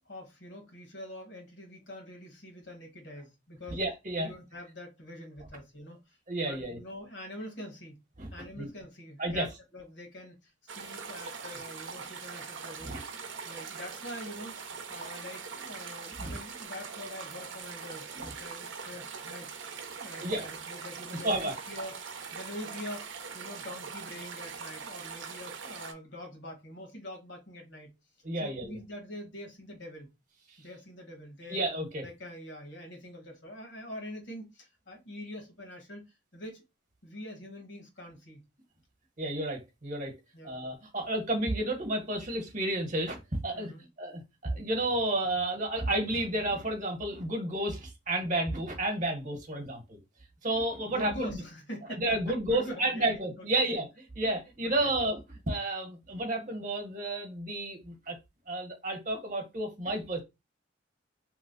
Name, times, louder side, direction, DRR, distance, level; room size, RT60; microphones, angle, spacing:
voice 1, 0.1-3.8 4.2-8.0 8.3-13.0 13.4-14.6 14.9-19.5 20.0-27.9 28.4-30.1 30.6-31.6 32.0-36.0 36.3-36.6 37.0-38.4 40.3-40.5 43.5-43.8 50.8-52.0 52.5-53.6 54.6-54.9, left 1 dB, 65° left, 1.2 m, -44 dB
voice 2, 3.7-4.3 6.3-6.8 8.2-8.3 8.6-8.7 9.2-9.5 12.8-13.0 16.2-16.4 20.2-20.4 21.2-21.5 28.2-28.8 31.5-32.0 39.2-40.1 40.4-43.7 44.0-50.0 50.4-51.4 52.0-53.9 54.1-55.2 55.5-58.1 58.5-60.2, right 1 dB, 40° right, 1.0 m, -31 dB
sound 1, 10.7-25.9, right 5 dB, 75° right, 0.7 m, -42 dB
3.0 x 2.1 x 3.8 m
head